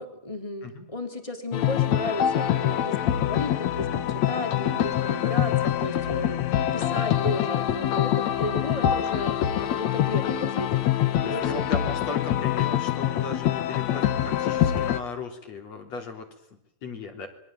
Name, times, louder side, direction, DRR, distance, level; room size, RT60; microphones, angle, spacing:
voice 1, 0.0-11.4, left 1 dB, 10° left, 5 dB, 2.7 m, -34 dB
sound 1, 1.5-15.0, left 11 dB, 65° left, 1.8 m, -25 dB
voice 2, 11.2-17.3, left 4 dB, 40° left, 5 dB, 4.2 m, -37 dB
27.0 x 23.0 x 7.5 m, 0.71 s
omnidirectional pair, 4.7 m